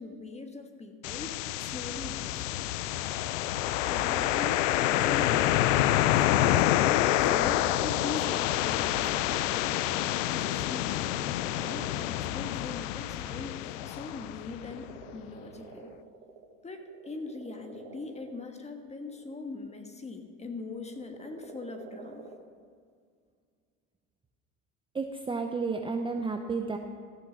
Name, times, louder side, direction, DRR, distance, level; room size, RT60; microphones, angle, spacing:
voice 1, 0.0-2.7 3.9-6.7 7.2-9.5 10.2-15.9 16.6-22.3, left 3 dB, 15° left, 5 dB, 1.4 m, -41 dB
sound 1, 1.0-14.9, left 13 dB, 85° left, 0.5 m, -27 dB
sound 2, 4.6-5.1 5.5-19.8 20.9-22.4, right 4 dB, 85° right, 1.4 m, -50 dB
voice 2, 24.9-26.8, right 4 dB, 15° right, 4 dB, 0.7 m, -31 dB
14.0 x 6.4 x 6.2 m, 2.1 s
hypercardioid pair, 85°, 37 cm